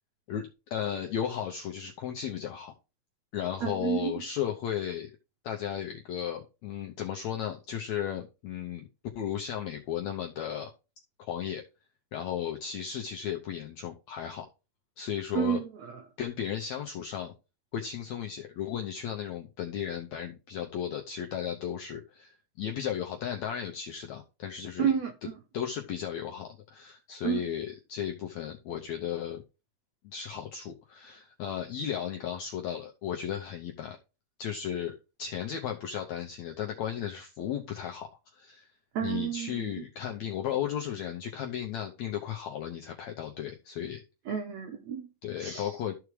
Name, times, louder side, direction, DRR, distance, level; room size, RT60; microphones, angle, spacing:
voice 1, 0.3-2.7 3.3-5.1 5.4-8.9 9.1-10.7 11.2-11.6 12.1-14.5 15.0-15.6 16.2-17.3 17.7-24.9 25.5-29.4 30.0-34.0 34.4-38.7 39.0-44.0 45.2-45.9, left 9 dB, 80° left, 1.6 m, -35 dB
voice 2, 3.6-4.1 15.3-15.7 24.8-25.4 27.2-27.4 38.9-39.7 44.3-45.1 45.4-45.7, right 8 dB, 90° right, 1.5 m, -30 dB
13.5 x 4.8 x 3.2 m
omnidirectional pair, 4.3 m